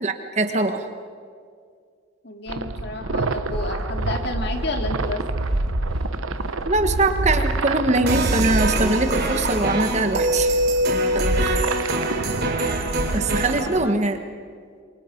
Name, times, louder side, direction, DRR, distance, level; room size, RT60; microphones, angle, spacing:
voice 1, 0.0-0.9 6.6-10.6 11.1-11.7 13.1-14.2, right 2 dB, 35° right, 7 dB, 1.4 m, -22 dB
voice 2, 2.2-5.2 12.1-12.5 13.6-13.9, left 2 dB, 55° left, 4 dB, 2.5 m, -31 dB
sound 1, 2.5-13.8, right 2 dB, 90° right, 1.0 m, -27 dB
sound 2, 3.3-10.8, equal, 5° left, 2.6 m, -37 dB
sound 3, 8.1-13.6, right 1 dB, 50° right, 3.4 m, -24 dB
28.0 x 24.0 x 5.3 m, 2.2 s
head